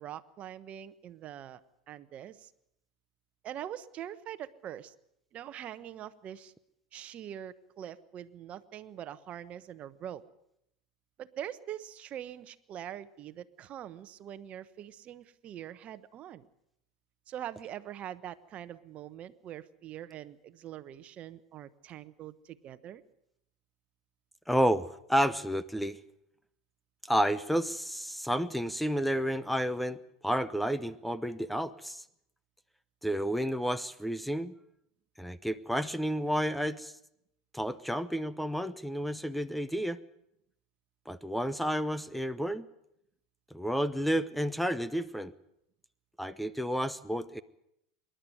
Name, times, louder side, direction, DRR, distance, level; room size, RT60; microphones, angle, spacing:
voice 1, 0.0-1.6 1.9-2.5 3.4-4.9 5.3-6.5 6.9-10.2 11.2-16.5 17.3-23.0, right 11 dB, 40° right, 14 dB, 1.1 m, -43 dB
voice 2, 24.5-26.0 27.0-30.0 30.2-32.0 33.0-34.5 35.2-36.9 37.5-40.0 41.1-42.7 43.5-45.3 46.2-47.4, equal, ahead, 15 dB, 0.8 m, -31 dB
26.5 x 11.5 x 9.2 m, 0.79 s
hypercardioid pair, 90°, 3 cm